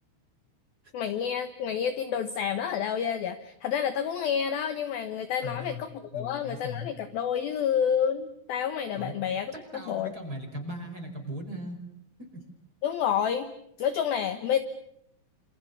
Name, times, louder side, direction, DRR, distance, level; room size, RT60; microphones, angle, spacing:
voice 1, 0.9-10.1 12.8-13.5 13.8-14.6, left 8 dB, 75° left, 10 dB, 2.2 m, -29 dB
voice 2, 5.4-5.8 6.1-6.9 8.9-9.1 9.5-11.8 12.3-12.4, left 1 dB, 20° right, 5 dB, 5.1 m, -38 dB
28.0 x 27.5 x 7.0 m, 0.74 s
omnidirectional pair, 5.8 m